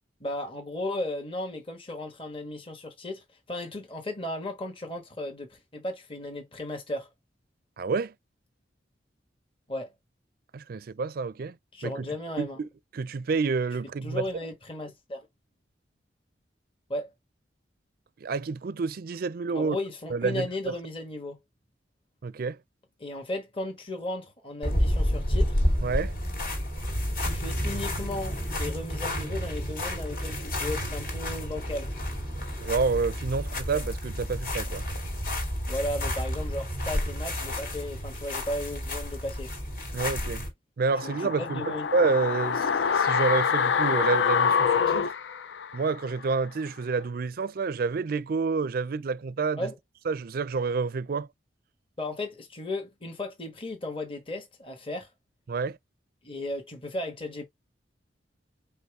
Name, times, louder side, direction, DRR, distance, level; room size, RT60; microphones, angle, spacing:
voice 1, 0.2-7.1 9.7-9.9 11.7-12.6 14.0-15.3 16.9-17.1 19.5-21.4 23.0-25.6 27.2-31.9 35.7-39.5 41.0-41.9 49.6-49.7 52.0-55.1 56.2-57.4, left 1 dB, 30° left, 1.3 m, -35 dB
voice 2, 7.8-8.1 10.5-11.6 11.8-12.1 12.4-12.7 12.9-14.4 18.2-19.8 20.1-20.7 22.2-22.6 25.8-26.1 32.6-34.8 39.9-40.4 40.8-45.1 45.7-49.7 50.1-51.3 55.5-55.8, right 4 dB, 55° right, 0.4 m, -29 dB
sound 1, 24.6-40.5, equal, 55° left, 2.3 m, -30 dB
sound 2, 40.9-46.0 46.3-46.4, left 6 dB, 80° left, 0.4 m, -26 dB
5.3 x 2.1 x 4.8 m
head